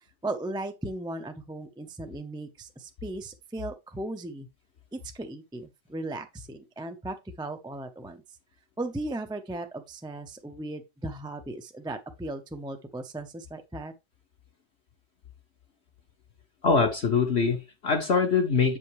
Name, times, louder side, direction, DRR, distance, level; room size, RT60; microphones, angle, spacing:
voice 1, 0.2-4.5 4.9-8.2 8.8-13.9, right 2 dB, 5° right, 0.5 m, -37 dB
voice 2, 16.6-18.8, left 5 dB, 50° left, 1.1 m, -23 dB
8.1 x 5.2 x 3.2 m
omnidirectional pair, 1.6 m